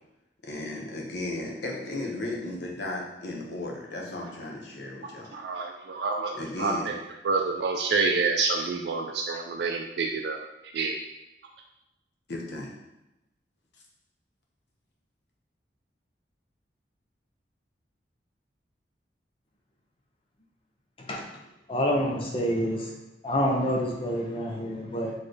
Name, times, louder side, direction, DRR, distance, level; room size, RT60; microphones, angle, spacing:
voice 1, 0.4-5.3 6.4-6.9 12.3-12.7, left 2 dB, 70° left, -1 dB, 0.9 m, -35 dB
voice 2, 5.3-6.9 7.2-10.4 10.6-11.0, right 4 dB, 65° right, 2 dB, 0.4 m, -28 dB
voice 3, 21.7-22.9 23.2-25.1, equal, 30° left, 0 dB, 0.5 m, -27 dB
4.2 x 3.1 x 3.2 m, 0.95 s
head